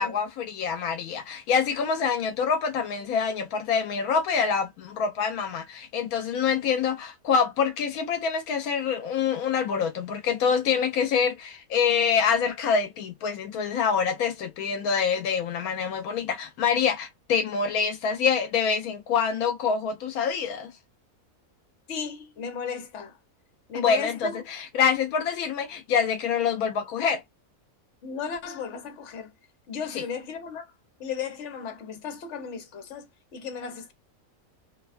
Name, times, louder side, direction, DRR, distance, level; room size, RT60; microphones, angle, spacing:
voice 1, 0.0-20.7 23.7-27.2 29.9-30.0, left 6 dB, 80° left, 1.1 m, -26 dB
voice 2, 21.9-23.2 23.7-24.4 28.0-29.3 29.7-30.7 31.0-33.1 33.3-33.9, left 6 dB, 60° left, 1.1 m, -35 dB
2.7 x 2.2 x 2.4 m
omnidirectional pair, 1.5 m